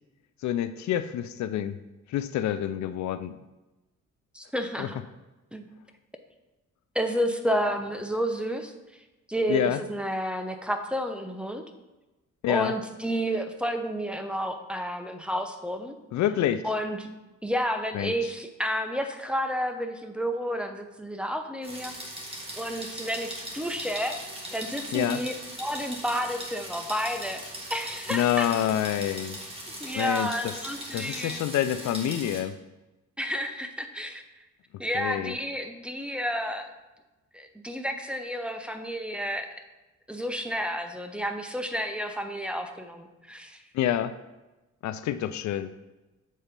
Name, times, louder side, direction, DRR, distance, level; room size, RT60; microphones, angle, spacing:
voice 1, 0.4-1.8 2.1-3.4 4.8-4.9 9.5-9.8 12.4-12.7 16.1-16.6 17.9-18.3 24.9-25.2 28.1-29.4 29.9-30.6 30.9-32.6 34.9-35.3 43.7-44.2 44.8-45.7, left 11 dB, 70° left, 12 dB, 0.5 m, -27 dB
voice 2, 4.3-5.0 5.5-5.7 6.9-8.7 9.3-11.6 12.5-15.9 16.6-17.1 17.4-21.9 22.6-24.2 24.5-25.3 25.6-27.4 27.7-28.5 29.8-31.4 33.2-34.2 34.8-36.7 37.3-39.5 40.1-43.6, equal, 5° right, 6 dB, 0.7 m, -31 dB
sound 1, 21.6-32.4, right 1 dB, 20° right, 1.8 m, -39 dB
7.5 x 4.1 x 5.2 m, 1.1 s
cardioid pair, 90°, 30 cm